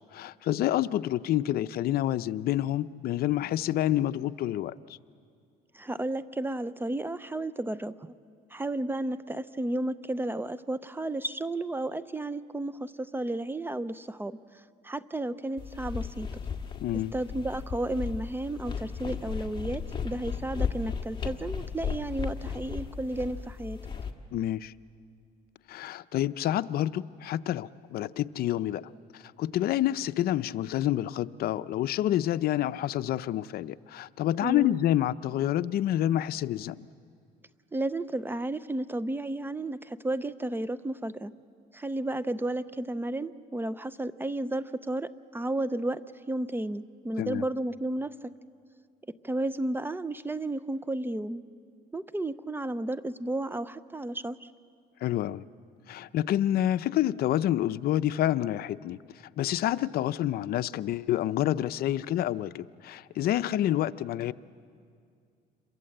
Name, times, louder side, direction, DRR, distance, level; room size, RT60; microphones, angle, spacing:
voice 1, 0.1-4.7 16.8-17.1 24.3-24.7 25.7-36.9 47.2-47.4 55.0-55.4 55.9-59.0 59.4-64.3, left 13 dB, 65° left, 13 dB, 0.6 m, -28 dB
voice 2, 5.7-8.1 8.5-14.4 14.8-16.3 17.1-23.8 34.4-34.8 37.7-41.3 41.7-46.0 46.3-48.1 49.2-51.4 51.9-54.5, right 1 dB, 10° right, 15 dB, 0.6 m, -32 dB
sound 1, 15.6-24.1, left 6 dB, 30° left, 1.7 m, -35 dB
27.5 x 23.0 x 7.8 m, 2.3 s
cardioid pair, 110°, 17 cm